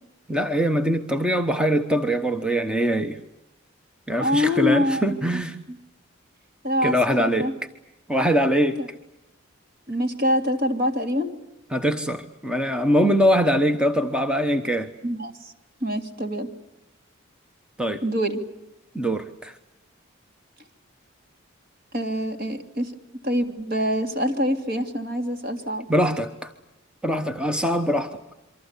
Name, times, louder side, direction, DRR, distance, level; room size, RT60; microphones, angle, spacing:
voice 1, 0.3-3.2 4.1-5.6 6.8-7.5 8.1-8.8 11.7-14.9 17.8-18.0 18.9-19.6 25.9-26.5 27.0-28.2, equal, 5° right, 6 dB, 1.0 m, -22 dB
voice 2, 4.2-5.4 5.7-5.8 6.6-7.5 8.8-8.9 9.9-11.3 15.0-15.5 15.8-16.5 18.0-18.4 21.9-22.9 23.2-25.9, left 1 dB, 45° right, 6 dB, 3.0 m, -25 dB
27.5 x 24.5 x 8.3 m, 0.91 s
head